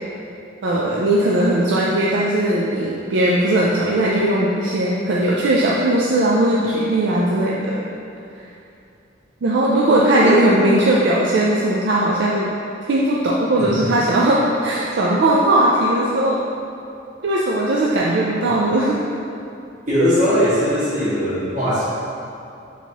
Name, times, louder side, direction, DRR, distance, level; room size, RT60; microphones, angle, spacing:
voice 1, 0.6-7.8 9.4-12.5 12.8-16.4 17.2-19.0, right 1 dB, 65° right, -4 dB, 0.4 m, -18 dB
voice 2, 19.9-21.8, equal, 40° right, -11 dB, 1.5 m, -19 dB
4.5 x 4.1 x 2.9 m, 2.6 s
head